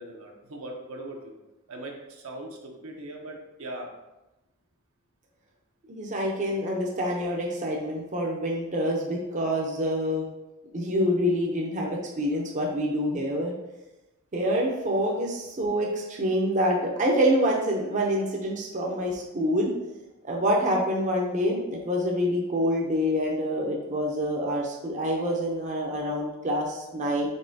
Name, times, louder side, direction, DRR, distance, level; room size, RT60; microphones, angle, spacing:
voice 1, 0.0-1.3 1.7-3.9, right 1 dB, 75° right, 1 dB, 0.8 m, -40 dB
voice 2, 5.9-10.3 10.7-13.5 14.3-19.7 20.2-27.3, equal, 35° right, -2 dB, 0.6 m, -26 dB
5.3 x 3.7 x 2.7 m, 0.99 s
head